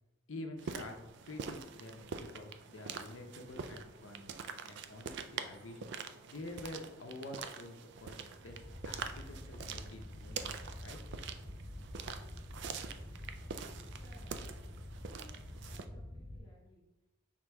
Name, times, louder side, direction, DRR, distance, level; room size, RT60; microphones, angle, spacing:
voice 1, 0.3-0.9 1.2-4.3 4.6-5.8 6.3-8.6 8.8-11.4, left 2 dB, 65° left, 4 dB, 0.6 m, -48 dB
sound 1, 0.6-15.9, right 6 dB, 60° right, 0.3 m, -45 dB
sound 2, 8.3-16.4, left 1 dB, 5° left, 0.6 m, -47 dB
voice 2, 14.0-14.6 15.0-17.1, equal, 20° left, -5 dB, 0.9 m, -62 dB
6.1 x 3.7 x 2.2 m, 1.0 s
head